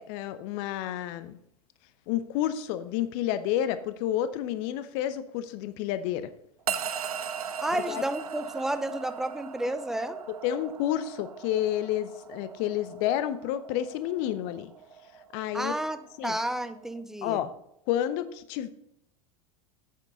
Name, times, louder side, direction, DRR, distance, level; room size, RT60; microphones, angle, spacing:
voice 1, 0.0-1.4 2.1-6.3 7.7-8.0 10.4-14.7 15.3-15.7 16.2-16.4 17.2-17.5 17.9-18.7, left 11 dB, 50° left, 13 dB, 0.7 m, -30 dB
sound 1, 6.7-17.0, right 7 dB, 75° right, 0.5 m, -39 dB
voice 2, 7.6-10.2 15.5-17.4, right 1 dB, ahead, 12 dB, 0.5 m, -31 dB
8.2 x 7.5 x 3.9 m, 0.77 s
figure-of-eight pair, 80°, 19 cm